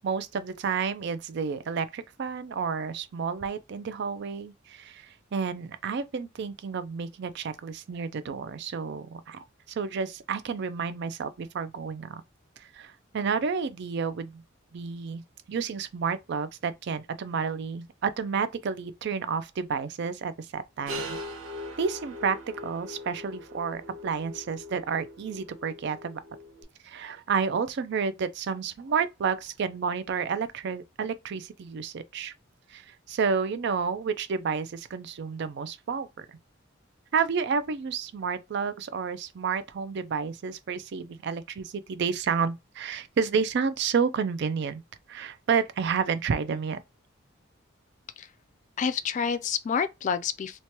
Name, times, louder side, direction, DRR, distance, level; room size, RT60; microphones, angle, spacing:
voice 1, 0.0-12.2 12.6-14.4 14.7-15.2 15.5-21.2 21.8-26.2 26.8-32.3 32.7-36.4 37.1-44.8 45.1-46.8, right 5 dB, 60° right, 0.4 m, -30 dB
sound 1, 20.9-26.6, left 1 dB, 75° right, 1.0 m, -41 dB
voice 2, 48.8-50.6, left 6 dB, 40° left, 0.3 m, -28 dB
3.1 x 2.2 x 2.8 m
head